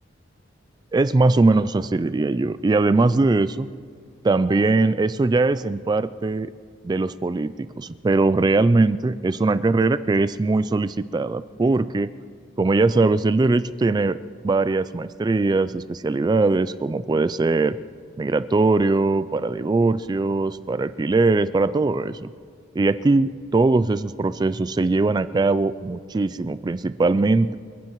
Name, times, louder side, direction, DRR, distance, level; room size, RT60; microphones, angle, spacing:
voice 1, 0.9-3.7 4.2-6.5 6.8-12.1 12.6-14.2 14.4-17.8 18.2-22.3 22.8-27.5, right 3 dB, 20° right, 14 dB, 0.3 m, -21 dB
28.0 x 15.0 x 3.1 m, 2.1 s
head